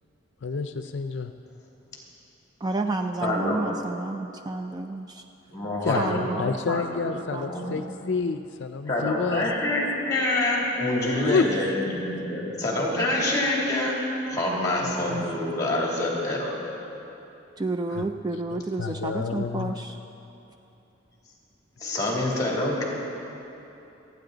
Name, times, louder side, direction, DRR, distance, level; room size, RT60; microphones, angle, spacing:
voice 1, 0.4-1.3 5.8-9.5 10.9-11.5 14.8-15.2 17.9-18.0 18.5-19.8, left 4 dB, 65° left, 8 dB, 0.5 m, -29 dB
voice 2, 2.6-5.2 6.0-7.8 17.6-20.0, right 2 dB, 20° right, 5 dB, 0.4 m, -31 dB
voice 3, 3.2-3.6 5.5-6.3 6.7-7.0 7.5-7.7 8.9-13.9 14.3-16.5 21.8-22.8, left 1 dB, 20° left, -3 dB, 2.9 m, -26 dB
27.5 x 9.7 x 3.9 m, 3.0 s
head